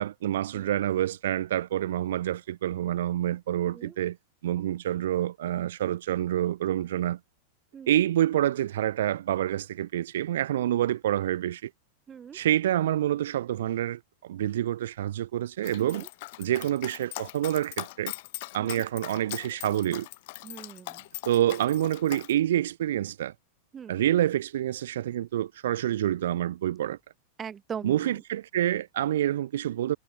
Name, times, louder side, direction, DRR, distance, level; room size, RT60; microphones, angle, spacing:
voice 1, 0.0-4.2 4.4-7.2 7.9-11.7 12.3-16.0 16.4-18.1 18.5-20.1 21.3-23.3 23.9-27.0 27.8-30.0, right 12 dB, 80° right, 0.6 m, -27 dB
voice 2, 3.7-4.0 7.7-8.0 12.1-12.4 15.8-16.1 18.6-18.9 20.4-21.1 23.7-24.0 27.4-28.2, right 7 dB, 20° right, 5.1 m, -41 dB
Dog, 15.6-22.3, left 21 dB, 60° left, 3.5 m, -40 dB
supercardioid pair, 135°, 0 cm